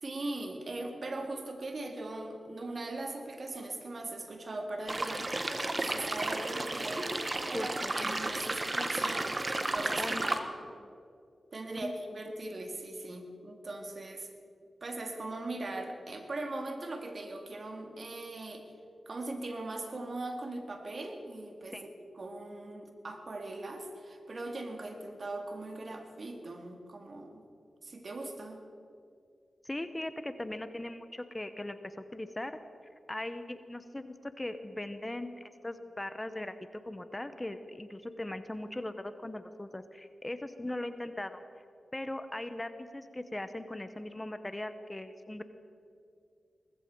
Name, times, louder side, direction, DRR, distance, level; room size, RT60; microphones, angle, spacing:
voice 1, 0.0-7.2 7.5-9.3 9.7-10.2 11.5-14.3 14.8-18.7 19.1-27.4 27.8-28.6, right 2 dB, 55° right, 4 dB, 2.1 m, -40 dB
sound 1, 4.9-10.4, right 2 dB, 35° right, 1.3 m, -33 dB
voice 2, 7.5-8.1 10.0-10.8 11.8-11.9 21.7-21.9 29.6-32.6 33.1-41.4 41.9-45.4, left 1 dB, 20° left, 11 dB, 1.0 m, -39 dB
19.0 x 14.5 x 4.7 m, 2.4 s
cardioid pair, 45°, 0 cm